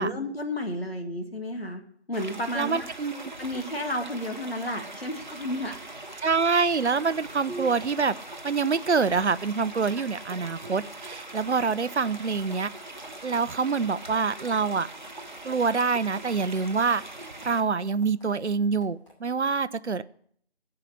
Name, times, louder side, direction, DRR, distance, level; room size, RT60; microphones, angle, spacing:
voice 1, 0.0-1.8 2.1-2.9 3.4-5.8 7.5-7.7, left 1 dB, 60° left, 6 dB, 1.9 m, -32 dB
sound 1, 2.1-17.6, right 2 dB, 45° right, 0.9 m, -42 dB
voice 2, 2.5-3.3 6.2-8.1 8.4-12.7 13.2-14.9 15.4-17.0 17.4-20.0, right 5 dB, 80° right, 16 dB, 0.6 m, -26 dB
sound 2, 6.0-9.7 10.2-10.9 11.2-14.9 15.2-19.2, equal, 25° left, 2.6 m, -56 dB
14.0 x 4.9 x 8.0 m, 0.64 s
figure-of-eight pair, 165°, 34 cm